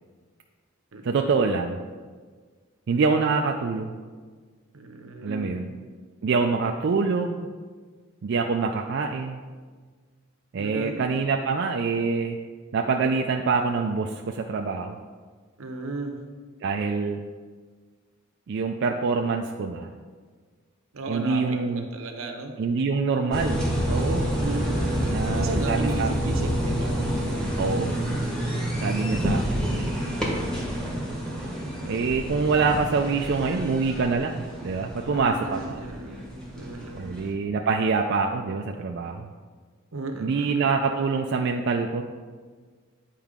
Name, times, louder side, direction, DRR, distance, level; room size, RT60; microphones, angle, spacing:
voice 1, 1.0-1.8 2.9-4.0 5.2-5.7 6.2-7.5 8.2-9.4 10.5-12.4 12.7-15.0 16.6-17.2 18.5-19.9 21.1-21.8 22.6-24.3 25.1-26.4 27.6-28.0 28.8-30.2 31.8-35.8 36.9-39.3 40.2-42.0, right 4 dB, 55° right, 2 dB, 0.4 m, -25 dB
voice 2, 4.7-5.6 10.6-11.0 15.6-16.2 20.9-22.6 24.4-27.0 35.1-37.1 39.9-40.6, right 2 dB, 80° right, 4 dB, 0.9 m, -35 dB
sound 1, 23.3-37.3, equal, 5° left, 1.2 m, -28 dB
8.9 x 4.6 x 3.6 m, 1.5 s
head